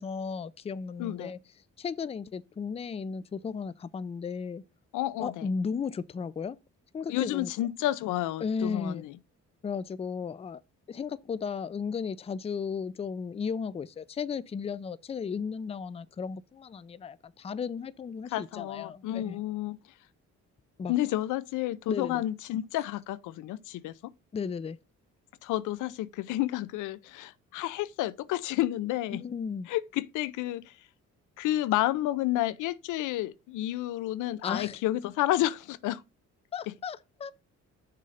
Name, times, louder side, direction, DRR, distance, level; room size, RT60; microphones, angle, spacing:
voice 1, 0.0-1.4 1.8-4.6 5.2-6.6 6.9-7.5 8.4-9.0 9.6-10.6 10.9-19.4 20.8-20.9 21.9-22.2 24.3-24.8 29.1-29.7 34.4-34.8 36.5-37.3, left 6 dB, 20° left, 0.4 m, -35 dB
voice 2, 1.0-1.3 4.9-5.5 7.1-9.1 18.3-19.8 20.9-23.9 25.4-29.2 29.7-30.7 31.4-36.0, left 15 dB, 90° left, 0.5 m, -30 dB
6.5 x 3.8 x 5.6 m
cardioid pair, 90°, 30 cm